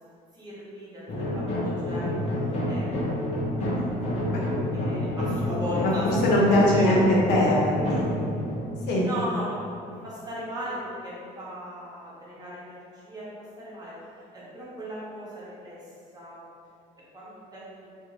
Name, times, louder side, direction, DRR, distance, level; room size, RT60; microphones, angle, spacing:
voice 1, 0.3-2.0 2.5-3.7 4.1-4.2 4.7-6.1 6.7-7.0 9.0-9.6 10.0-13.3 13.6-13.9 14.3-15.8 16.1-16.4 17.1-17.9, equal, 25° right, -8 dB, 0.8 m, -37 dB
sound 1, 1.1-9.9, left 1 dB, 40° left, 0.7 m, -29 dB
voice 2, 6.0-8.2 8.9-9.1, left 1 dB, 80° left, -3 dB, 0.6 m, -21 dB
2.5 x 2.1 x 3.1 m, 2.4 s
cardioid pair, 110°, 17 cm